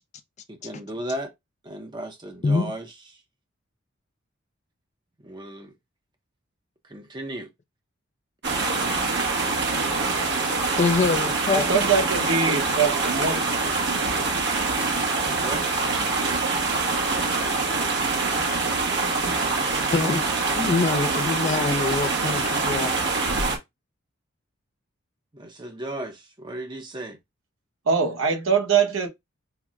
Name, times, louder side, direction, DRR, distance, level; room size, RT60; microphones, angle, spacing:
voice 1, 0.5-1.3 1.6-2.9 5.2-5.7 6.9-7.5 8.5-9.0 15.3-15.7 25.3-27.2, right 1 dB, 20° right, 0.6 m, -35 dB
sound 1, 8.4-23.6, right 3 dB, 55° right, 1.1 m, -25 dB
voice 2, 10.8-11.8 19.9-20.3 20.5-23.0, left 4 dB, 35° left, 0.4 m, -24 dB
voice 3, 11.5-13.4 27.9-29.1, right 5 dB, 85° right, 1.0 m, -22 dB
5.6 x 2.1 x 2.4 m
head